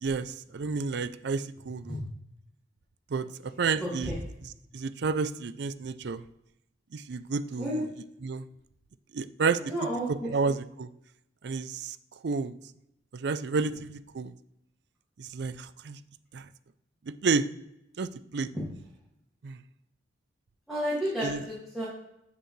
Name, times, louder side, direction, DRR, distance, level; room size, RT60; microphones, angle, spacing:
voice 1, 0.0-2.0 3.1-4.1 4.4-6.2 6.9-7.9 8.2-8.5 9.1-10.9 11.4-12.0 12.2-12.5 13.1-14.3 15.2-16.0 16.3-16.5 17.1-17.5 18.0-18.5 19.4-19.6 21.2-21.4, right 4 dB, 60° right, 13 dB, 0.4 m, -31 dB
voice 2, 3.8-4.1 7.6-7.8 9.7-10.3 20.7-21.9, equal, ahead, -9 dB, 2.1 m, -31 dB
10.0 x 4.9 x 3.2 m, 0.85 s
head